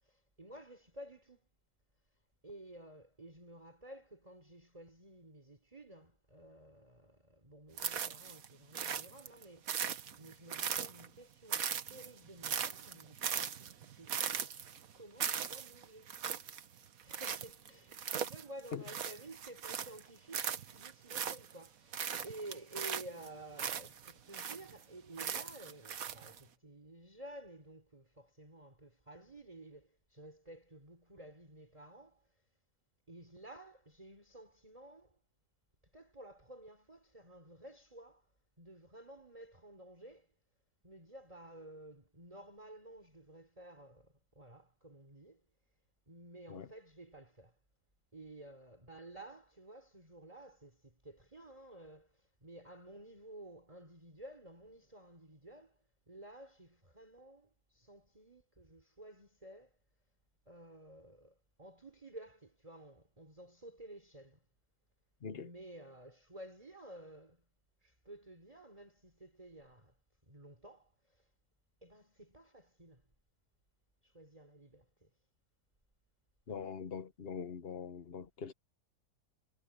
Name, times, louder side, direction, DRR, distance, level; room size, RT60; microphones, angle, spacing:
voice 1, 0.0-1.5 2.4-9.8 10.2-14.5 14.9-16.2 17.0-32.4 33.1-35.2 35.9-38.3 38.6-40.3 40.8-45.4 46.1-47.6 48.1-59.8 60.5-64.5 65.3-67.5 67.8-70.0 70.2-71.3 71.8-73.1 74.0-75.1, right 1 dB, 20° right, 4.1 m, -53 dB
sound 1, 7.8-8.5 8.7-11.2 11.5-20.0 20.3-21.7 21.9-24.8 25.2-26.4, right 8 dB, 60° right, 1.5 m, -39 dB
voice 2, 76.5-78.5, left 6 dB, 40° left, 1.1 m, -42 dB
omnidirectional pair, 1.8 m